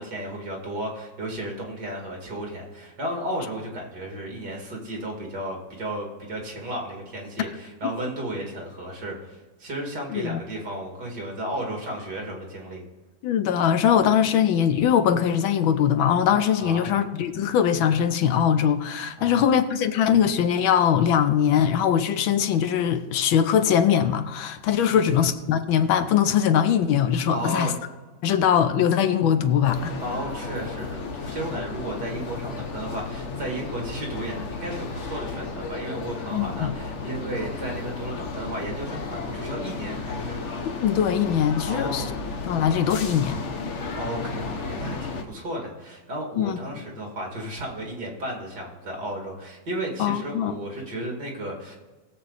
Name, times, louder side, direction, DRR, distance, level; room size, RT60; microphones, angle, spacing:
voice 1, 0.0-12.8 16.6-17.0 19.2-19.5 24.9-25.3 27.3-27.7 30.0-40.4 41.6-42.1 43.9-51.8, right 1 dB, 55° right, 0 dB, 3.1 m, -33 dB
voice 2, 10.1-10.4 13.2-27.7 28.2-29.9 36.3-36.7 40.8-42.1 42.4-43.4 46.4-46.6 50.0-50.5, left 8 dB, 80° left, 10 dB, 1.5 m, -21 dB
sound 1, 29.6-45.2, left 4 dB, 45° left, 1.0 m, -33 dB
19.5 x 7.7 x 4.1 m, 1.2 s
omnidirectional pair, 2.2 m